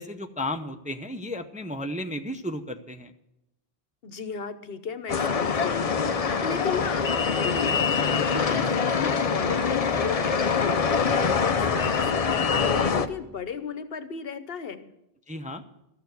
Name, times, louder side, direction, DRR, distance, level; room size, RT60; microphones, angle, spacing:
voice 1, 0.0-3.1 15.3-15.6, left 1 dB, 10° right, 6 dB, 0.6 m, -33 dB
voice 2, 4.0-12.2 12.7-14.9, left 6 dB, 70° left, 11 dB, 1.1 m, -35 dB
sound 1, 5.1-13.1, left 5 dB, 40° left, 0.7 m, -24 dB
13.5 x 6.9 x 9.4 m, 0.84 s
omnidirectional pair, 1.0 m